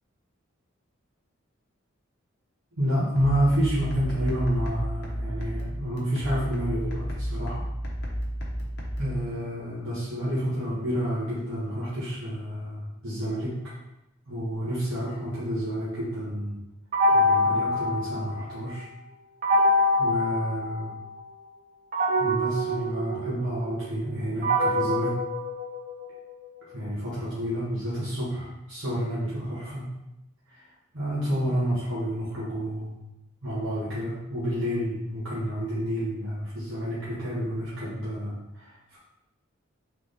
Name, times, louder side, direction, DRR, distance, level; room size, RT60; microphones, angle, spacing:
voice 1, 2.8-7.6 9.0-13.7 14.3-16.6 17.1-18.8 20.0-20.9 22.1-25.2 26.7-29.9 30.5-30.6 30.9-33.0 33.4-39.0, equal, 70° right, -10 dB, 1.5 m, -29 dB
sound 1, 3.2-9.2, equal, 50° left, 0.9 m, -32 dB
sound 2, 16.9-18.7 19.4-21.2 21.9-26.2, left 1 dB, 40° right, 0.5 m, -25 dB
3.7 x 3.4 x 3.8 m, 0.91 s
head